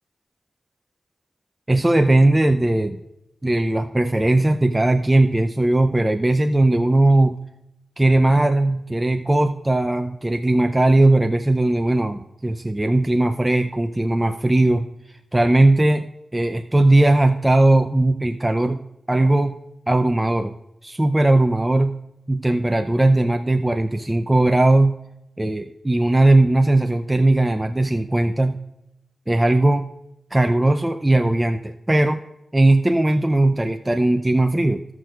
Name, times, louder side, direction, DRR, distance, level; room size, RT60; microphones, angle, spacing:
voice 1, 1.7-3.0 3.4-7.4 8.0-14.9 15.3-16.0 16.3-18.8 19.1-19.5 19.9-20.6 20.8-21.9 22.3-24.9 25.4-28.6 29.3-29.9 30.3-32.2 32.5-34.8, right 2 dB, 20° right, 6 dB, 0.6 m, -18 dB
16.0 x 6.0 x 2.5 m, 0.86 s
cardioid pair, 40°, 0 cm